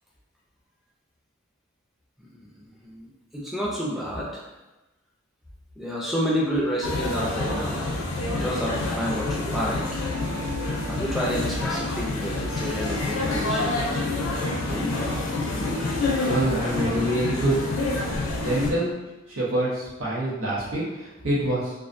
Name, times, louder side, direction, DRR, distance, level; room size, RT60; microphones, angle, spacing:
voice 1, 2.2-4.5 5.8-7.9 8.3-10.0 10.9-16.2, equal, ahead, -5 dB, 0.4 m, -30 dB
sound 1, 6.8-18.7, left 2 dB, 85° left, 0.5 m, -27 dB
voice 2, 16.2-17.6 18.4-19.0 19.3-21.7, right 1 dB, 85° right, -6 dB, 0.7 m, -25 dB
2.3 x 2.2 x 2.4 m, 1.1 s
head